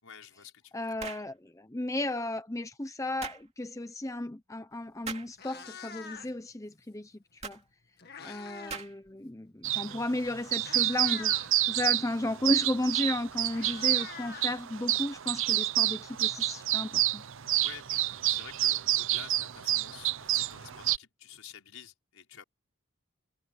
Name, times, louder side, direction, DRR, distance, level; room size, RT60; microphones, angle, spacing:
voice 1, 0.0-1.0 8.2-8.4 17.6-22.4, left 7 dB, 75° left, 5.3 m, -50 dB
voice 2, 0.7-7.6 8.2-11.3 11.7-17.2, left 1 dB, 15° left, 0.7 m, -34 dB
sound 1, 1.0-1.3 3.2-3.4 5.0-5.3 7.4-7.6 8.7-9.1, right 5 dB, 30° right, 2.6 m, -40 dB
Meow, 4.7-4.9 5.2-6.5 7.6-8.9 9.2-9.5 10.2-10.3 10.6-11.5 12.8-12.9 13.2-15.1, left 6 dB, 45° left, 2.0 m, -45 dB
sound 2, 9.6-21.0, right 14 dB, 60° right, 0.6 m, -29 dB
head